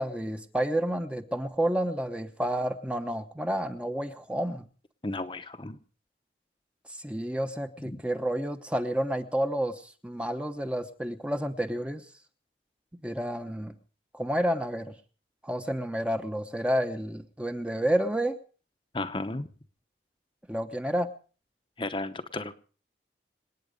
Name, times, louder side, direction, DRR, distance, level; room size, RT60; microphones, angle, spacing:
voice 1, 0.0-4.7 6.9-12.0 12.9-13.7 14.1-14.9 15.4-18.4 20.5-21.1, right 1 dB, 5° right, 7 dB, 1.0 m, -30 dB
voice 2, 5.0-5.8 7.8-8.0 18.9-19.5 21.8-22.6, left 2 dB, 25° left, 8 dB, 0.9 m, -34 dB
27.0 x 9.3 x 5.2 m, 0.40 s
head